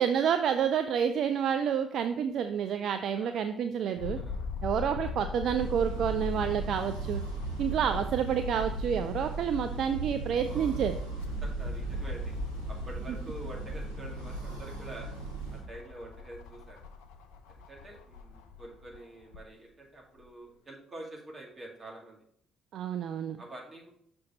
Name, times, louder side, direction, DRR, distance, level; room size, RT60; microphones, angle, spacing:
voice 1, 0.0-4.2 4.6-7.2 7.6-10.9 22.7-23.4, right 8 dB, 55° right, 8 dB, 0.3 m, -29 dB
voice 2, 3.2-3.5 3.8-4.5 10.5-10.8 11.4-12.3 12.7-15.1 15.5-16.8 17.7-22.2 23.4-23.9, right 1 dB, 30° right, -1 dB, 2.1 m, -47 dB
sound 1, 4.0-9.0 9.5-9.6 10.9-19.5 20.2-20.3, left 4 dB, 70° left, 0.5 m, -42 dB
sound 2, 5.5-15.6, right 2 dB, 85° right, 1.0 m, -36 dB
6.3 x 4.3 x 4.1 m, 0.66 s
figure-of-eight pair, 45°, 0 cm